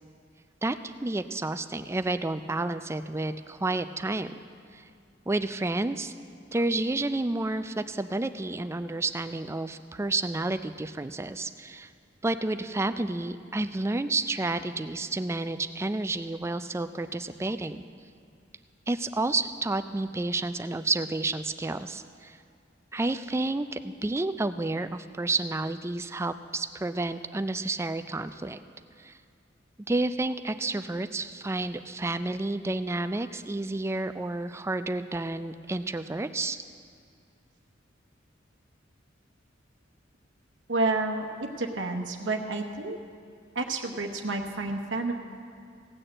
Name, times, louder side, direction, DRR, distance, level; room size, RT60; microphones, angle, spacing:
voice 1, 0.6-4.3 5.3-6.1 6.5-11.9 12.2-17.8 18.9-22.4 22.9-28.6 29.0-29.1 29.9-36.6, right 2 dB, 15° right, 10 dB, 0.4 m, -30 dB
voice 2, 40.7-41.3 41.6-43.0 43.5-45.1, right 2 dB, 75° right, 3 dB, 1.0 m, -29 dB
17.0 x 6.7 x 7.7 m, 2.3 s
head